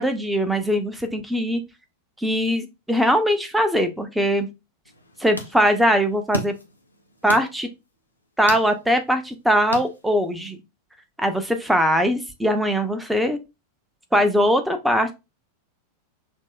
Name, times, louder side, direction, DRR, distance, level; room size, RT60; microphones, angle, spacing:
voice 1, 0.0-1.6 2.2-4.5 5.2-6.5 7.2-7.7 8.4-10.6 11.2-13.4 14.1-15.1, equal, 5° right, 8 dB, 0.6 m, -21 dB
sound 1, 4.8-10.5, left 1 dB, 85° left, 0.6 m, -36 dB
6.0 x 2.0 x 2.4 m, 0.25 s
figure-of-eight pair, 90°, 0 cm